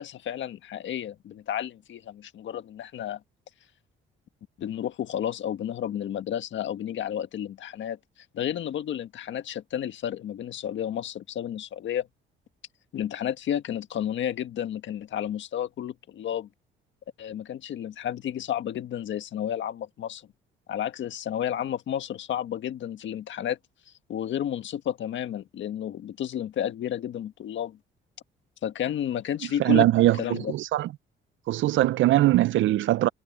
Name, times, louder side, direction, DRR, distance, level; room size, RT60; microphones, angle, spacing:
voice 1, 0.0-3.2 4.6-8.0 8.3-12.1 12.9-16.5 17.2-20.2 20.7-23.6 24.1-27.8 28.6-29.9 30.1-30.5, left 10 dB, 70° left, 1.6 m, -31 dB
voice 2, 29.6-30.9 31.5-33.1, right 15 dB, 75° right, 0.6 m, -21 dB
cardioid pair, 90°, 20 cm